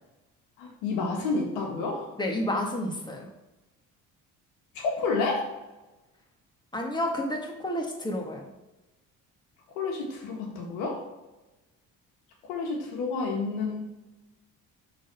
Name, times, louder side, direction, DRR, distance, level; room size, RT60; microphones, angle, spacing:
voice 1, 0.6-2.2 4.7-5.5 9.7-11.0 12.4-13.8, left 4 dB, 85° left, 0 dB, 1.6 m, -30 dB
voice 2, 2.2-3.3 6.7-8.5, left 1 dB, 10° left, 1 dB, 1.7 m, -30 dB
6.3 x 4.0 x 5.3 m, 1.0 s
supercardioid pair, 65°, 38 cm